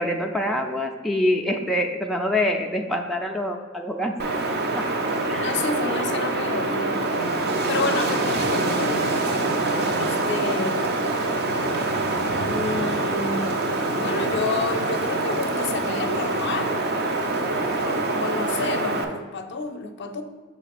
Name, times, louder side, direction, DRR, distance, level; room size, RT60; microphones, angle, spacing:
voice 1, 0.0-4.2 4.7-4.9 5.3-5.6, left 1 dB, ahead, 1 dB, 0.4 m, -25 dB
Wind, 4.2-19.0, right 2 dB, 50° right, 0.6 m, -25 dB
voice 2, 5.4-7.1 7.7-9.2 10.0-11.2 12.4-13.5 13.9-16.8 17.8-20.2, left 3 dB, 60° left, 7 dB, 0.5 m, -29 dB
6.2 x 3.2 x 5.9 m, 1.4 s
head